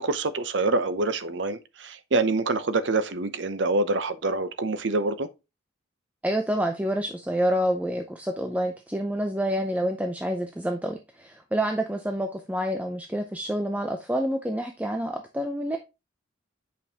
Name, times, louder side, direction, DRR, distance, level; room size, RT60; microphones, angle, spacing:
voice 1, 0.0-5.3, right 3 dB, 65° right, 0.7 m, -26 dB
voice 2, 6.2-15.8, equal, 10° right, 0.5 m, -28 dB
8.5 x 5.2 x 2.8 m
head